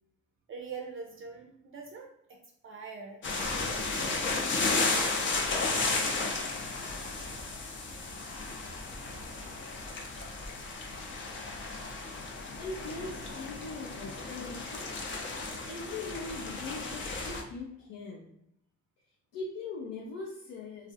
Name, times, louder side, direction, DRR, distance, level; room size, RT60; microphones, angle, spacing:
voice 1, 0.5-2.4 2.6-3.2, right 5 dB, 45° right, 1 dB, 0.4 m, -43 dB
sound 1, 3.2-17.4, left 3 dB, 40° left, 0.5 m, -34 dB
voice 2, 12.6-14.9 15.7-18.2 19.3-20.9, left 3 dB, 85° left, -2 dB, 0.5 m, -41 dB
2.3 x 2.0 x 2.7 m, 0.76 s
cardioid pair, 90°, 30 cm